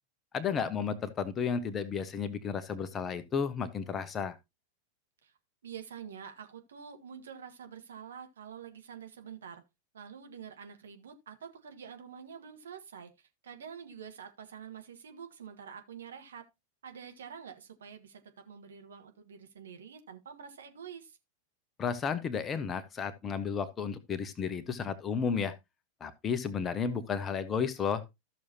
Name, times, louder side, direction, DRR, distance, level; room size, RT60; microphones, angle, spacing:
voice 1, 0.3-4.3 21.8-25.5 26.0-28.0, left 6 dB, 25° left, 1.1 m, -33 dB
voice 2, 5.6-9.6 9.9-13.1 13.4-16.4 16.8-21.2, right 7 dB, 65° right, 1.5 m, -47 dB
14.0 x 6.5 x 2.8 m
figure-of-eight pair, 90°, 0 cm